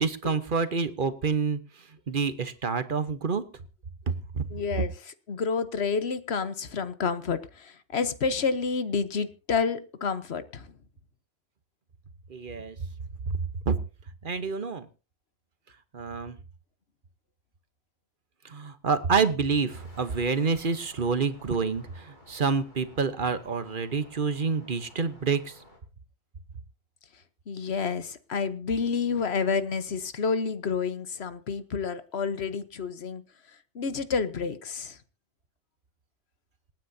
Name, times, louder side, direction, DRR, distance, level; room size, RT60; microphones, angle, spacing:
voice 1, 0.0-1.6 2.1-3.4 4.3-4.4 12.3-12.8 13.6-13.8 14.2-14.9 15.9-16.4 18.4-25.6, right 5 dB, 55° right, 11 dB, 1.2 m, -27 dB
voice 2, 4.5-4.9 5.3-10.7 27.5-33.2 33.7-35.0, left 5 dB, 75° left, 12 dB, 1.3 m, -29 dB
sound 1, 19.7-25.8, left 1 dB, 45° left, 3.7 m, -53 dB
27.0 x 9.3 x 2.8 m, 0.33 s
omnidirectional pair, 1.1 m